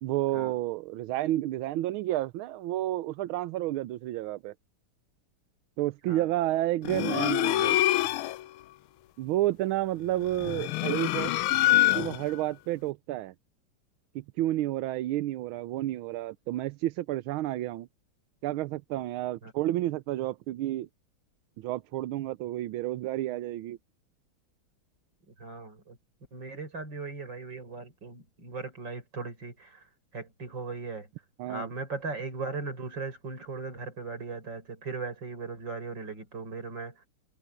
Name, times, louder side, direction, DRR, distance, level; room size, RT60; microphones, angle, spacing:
voice 1, 0.0-4.5 5.8-7.8 9.2-11.3 11.9-13.3 14.1-17.9 18.4-20.9 21.6-23.8 31.4-31.7, right 15 dB, 80° right, 1.5 m, -30 dB
sound 1, 6.8-8.4 10.3-12.4, left 15 dB, 90° left, 1.5 m, -25 dB
voice 2, 25.3-26.0 26.3-31.1 31.5-37.1, right 4 dB, 60° right, 6.2 m, -38 dB
omnidirectional pair, 2.3 m